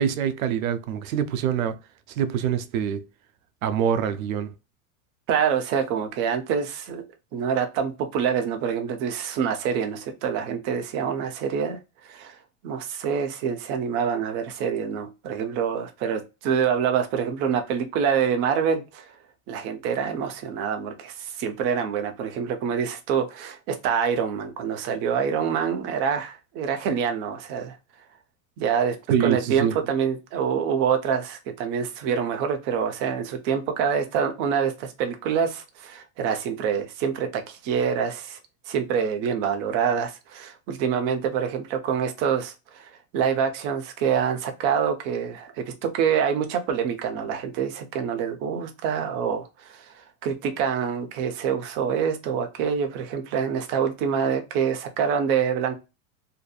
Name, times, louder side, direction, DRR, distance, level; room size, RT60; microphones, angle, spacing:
voice 1, 0.0-1.8 2.1-3.0 3.6-4.5 29.1-29.8, right 8 dB, 85° right, 0.6 m, -25 dB
voice 2, 5.3-7.0 7.3-11.8 12.0-12.4 12.6-19.1 19.5-27.8 28.6-38.4 38.7-55.7, right 7 dB, 30° right, 0.4 m, -26 dB
2.5 x 2.5 x 2.2 m
supercardioid pair, 145°, 41 cm